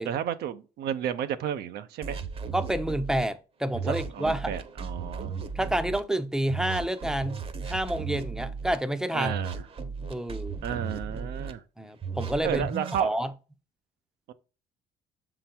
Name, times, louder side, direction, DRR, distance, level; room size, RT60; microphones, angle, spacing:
voice 1, 0.1-2.2 3.9-5.3 9.1-9.5 10.6-11.6 12.4-13.2 14.3-14.4, right 9 dB, 70° right, 0.7 m, -32 dB
sound 1, 2.0-3.2 3.7-6.0 6.5-8.8 9.2-11.5 12.0-13.0, right 5 dB, 35° right, 0.9 m, -35 dB
voice 2, 2.5-4.5 4.8-4.9 5.6-9.3 10.1-10.6 11.8-12.7 13.0-13.3, right 1 dB, 5° right, 0.6 m, -29 dB
6.8 x 3.9 x 4.4 m
cardioid pair, 110°, 17 cm